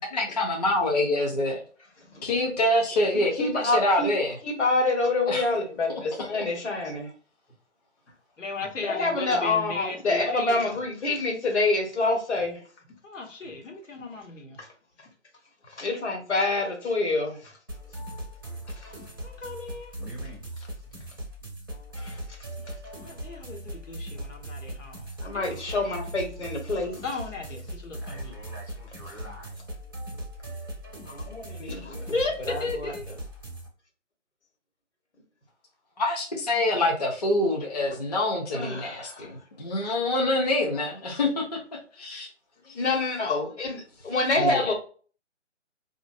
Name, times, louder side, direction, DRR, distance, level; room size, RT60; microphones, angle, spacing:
voice 1, 0.1-1.6 2.2-4.4 5.3-5.4 6.3-6.4 36.0-41.6 42.0-42.3 42.6-42.8 44.4-44.7, left 1 dB, 35° left, 0.5 m, -26 dB
voice 2, 3.4-4.1 4.4-7.1 8.8-12.6 14.6-14.7 15.7-17.5 18.8-18.9 22.0-22.2 25.2-27.0 31.0-32.1 32.5-32.9 38.5-39.3 42.7-44.7, left 2 dB, 60° left, 1.4 m, -27 dB
voice 3, 8.4-10.8 13.0-14.6 19.2-19.9 22.9-25.1 25.3-25.8 27.0-28.3 32.1-33.0, left 3 dB, 85° left, 1.3 m, -35 dB
sound 1, 17.7-33.7, right 1 dB, 20° right, 0.4 m, -39 dB
4.4 x 2.5 x 2.5 m
hypercardioid pair, 160°, 37 cm